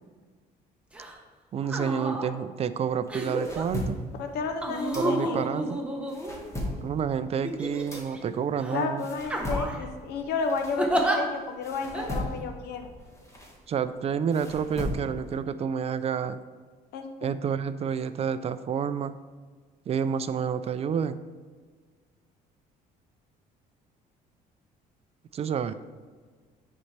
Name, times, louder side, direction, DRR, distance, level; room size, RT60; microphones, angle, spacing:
sound 1, 0.9-1.1 1.6-2.3 3.1-3.6 4.6-6.7 7.4-8.2 8.6-8.8 9.3-9.9 10.8-11.2 11.9-12.1, right 1 dB, 5° right, 1.0 m, -30 dB
voice 1, 1.5-4.0 4.9-5.8 6.8-9.1 13.7-16.4 17.2-19.2 19.9-21.3 25.3-25.7, right 7 dB, 40° right, 13 dB, 0.4 m, -29 dB
sound 2, 3.0-5.6 5.9-11.2 11.6-15.4, left 1 dB, 15° left, 1.6 m, -37 dB
voice 2, 4.2-5.4 8.7-12.9 16.9-17.3, left 4 dB, 75° left, 5 dB, 0.7 m, -32 dB
9.8 x 4.2 x 3.3 m, 1.5 s
cardioid pair, 110°, 17 cm